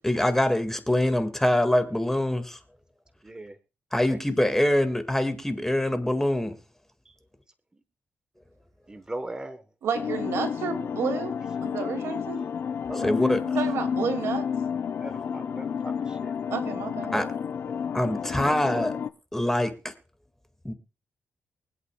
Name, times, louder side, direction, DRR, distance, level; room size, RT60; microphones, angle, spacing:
voice 1, 0.0-2.6 3.9-6.6 13.0-13.4 17.1-17.2 17.9-18.9 19.3-19.9 20.6-20.7, left 1 dB, 10° left, 1.9 m, -24 dB
voice 2, 3.2-3.6 3.9-4.2 7.0-7.1 7.7-7.8 8.9-9.6 12.9-13.4 14.9-16.3 17.1-17.3 18.4-18.9, right 1 dB, 15° right, 1.1 m, -38 dB
voice 3, 9.8-12.4 13.5-14.6 16.5-17.1, right 6 dB, 90° right, 2.2 m, -31 dB
sound 1, 9.9-19.1, left 7 dB, 65° left, 0.7 m, -30 dB
24.0 x 8.3 x 2.3 m
cardioid pair, 90°, 4 cm